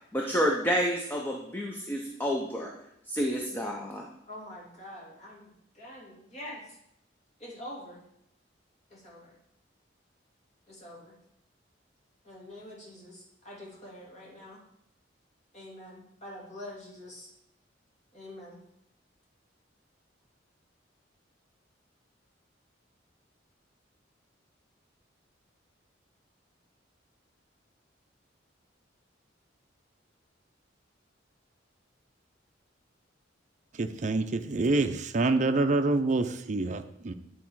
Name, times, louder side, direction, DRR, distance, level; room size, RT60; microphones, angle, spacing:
voice 1, 0.1-2.7 3.1-4.1, equal, 10° left, 0 dB, 0.6 m, -29 dB
voice 2, 4.3-6.8 7.4-8.0 8.9-9.4 10.7-11.1 12.2-14.6 15.5-17.3 18.1-18.6, left 1 dB, 35° left, -5 dB, 2.7 m, -45 dB
voice 3, 33.7-37.1, right 3 dB, 40° right, 7 dB, 0.5 m, -27 dB
9.4 x 4.2 x 4.6 m, 0.77 s
head